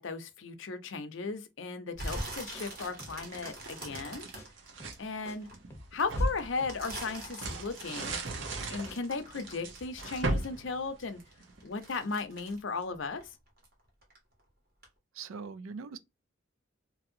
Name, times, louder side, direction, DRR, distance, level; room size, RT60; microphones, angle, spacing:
voice 1, 0.0-4.3 5.0-5.5 5.9-8.2 8.7-11.2 11.6-13.2, left 4 dB, 70° left, 0.6 m, -36 dB
sound 1, 1.9-5.5 6.0-10.7 11.0-13.7 14.0-14.4 14.8-14.9, right 1 dB, 45° right, 1.4 m, -43 dB
sound 2, 2.1-2.3 2.5-2.7 3.0-3.2 3.4-3.6 3.9-4.1 4.4-4.5 4.8-5.0 5.3-5.4 5.7-5.9 6.2-6.3 6.6-6.8 7.1-7.2 7.5-8.1 8.4-8.6 8.9-9.0, equal, 15° left, 0.7 m, -49 dB
sound 3, 3.0-5.0 5.5-11.6, right 1 dB, 65° right, 0.8 m, -37 dB
voice 2, 15.1-16.0, right 5 dB, 85° right, 0.4 m, -41 dB
2.9 x 2.7 x 2.5 m
head